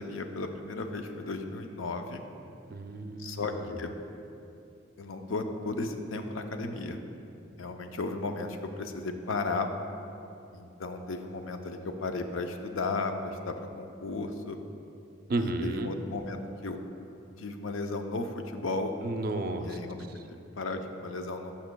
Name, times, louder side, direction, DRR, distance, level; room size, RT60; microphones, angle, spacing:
voice 1, 0.0-2.2 3.2-3.9 5.0-7.0 7.6-9.7 10.5-14.6 15.4-16.8 17.4-18.9 19.6-21.5, left 3 dB, 90° left, 6 dB, 0.6 m, -35 dB
voice 2, 2.7-3.6 15.3-15.9 19.0-19.8, right 2 dB, 50° right, 7 dB, 0.4 m, -32 dB
13.0 x 5.6 x 2.2 m, 2.7 s
head